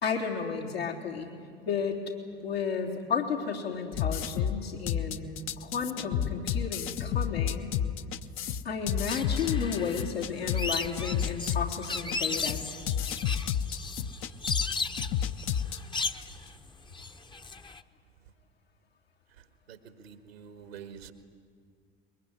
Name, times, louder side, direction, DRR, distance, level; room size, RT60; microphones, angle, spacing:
voice 1, 0.0-1.3 1.7-2.0 2.4-7.8 8.6-12.7, left 6 dB, 80° left, -2 dB, 3.5 m, -33 dB
sound 1, 3.9-16.2, left 9 dB, 45° left, 0.9 m, -31 dB
sound 2, 9.1-17.8, left 3 dB, 15° left, 0.9 m, -36 dB
voice 2, 19.7-21.1, right 7 dB, 85° right, 8 dB, 1.8 m, -47 dB
22.5 x 22.0 x 9.8 m, 2.2 s
figure-of-eight pair, 70°, 30 cm